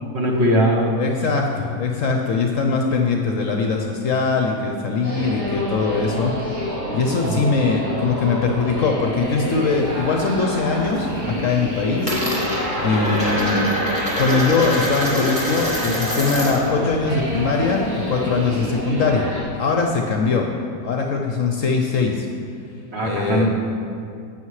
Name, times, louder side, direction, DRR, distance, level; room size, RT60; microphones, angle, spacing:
voice 1, 0.1-0.9 7.2-7.4 12.9-13.2 22.9-23.5, equal, 45° right, -1 dB, 1.1 m, -20 dB
voice 2, 1.0-6.3 6.9-12.1 12.4-13.6 14.2-19.3 19.5-20.5 20.8-22.3 23.0-23.5, left 4 dB, 60° left, 2 dB, 0.9 m, -21 dB
sound 1, 5.0-19.4, equal, 80° right, 3.5 m, -28 dB
Coin (dropping), 9.2-10.4 10.7-11.2 11.4-16.7 17.0-18.7, equal, 5° right, 2.2 m, -26 dB
11.5 x 8.5 x 3.2 m, 2.3 s
omnidirectional pair, 1.8 m